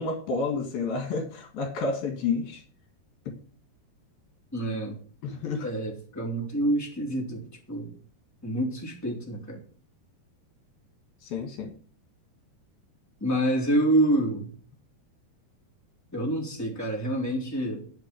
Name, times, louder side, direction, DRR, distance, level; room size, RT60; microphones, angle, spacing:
voice 1, 0.0-2.6 3.3-3.4 5.2-5.7 11.2-11.7, left 4 dB, 70° left, 4 dB, 3.5 m, -30 dB
voice 2, 4.5-5.0 5.6-7.4 7.7-7.9 8.4-9.6 13.2-14.5 16.1-17.8, right 1 dB, 5° left, -1 dB, 3.1 m, -27 dB
10.5 x 7.2 x 7.6 m, 0.43 s
omnidirectional pair, 4.7 m